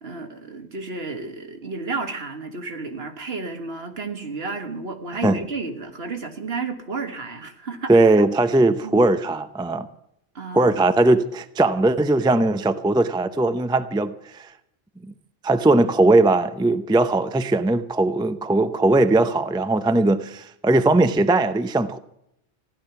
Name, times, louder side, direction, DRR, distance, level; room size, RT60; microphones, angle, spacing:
voice 1, 0.0-7.9 8.8-9.1 10.4-10.7, right 4 dB, 65° right, 1.8 m, -32 dB
voice 2, 7.9-9.9 10.5-14.5 15.4-22.0, right 2 dB, 5° right, 0.5 m, -19 dB
15.5 x 12.0 x 5.9 m
omnidirectional pair, 1.1 m